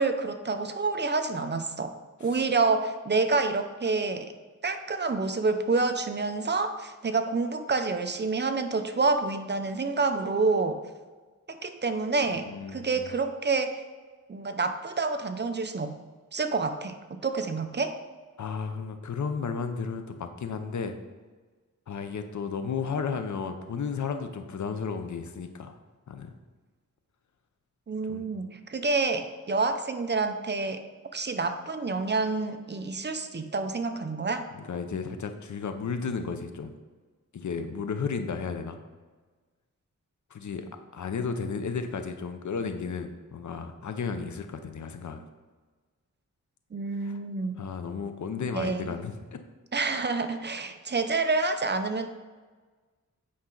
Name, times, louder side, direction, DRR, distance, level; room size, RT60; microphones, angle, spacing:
voice 1, 0.0-1.9 2.2-4.3 4.6-10.8 11.5-12.5 12.7-13.8 14.3-16.0 16.3-18.0 27.9-30.8 31.1-34.5 46.7-47.6 48.5-48.9 49.7-52.1, right 3 dB, 35° right, 8 dB, 0.6 m, -28 dB
voice 2, 12.4-13.0 18.4-21.0 21.9-25.8 26.1-26.3 28.1-28.3 34.5-36.8 37.3-38.8 40.3-40.6 40.9-45.2 47.0-47.2 47.6-49.4, left 5 dB, 70° left, 7 dB, 0.8 m, -33 dB
8.7 x 5.6 x 3.9 m, 1.4 s
wide cardioid pair, 110°, 31 cm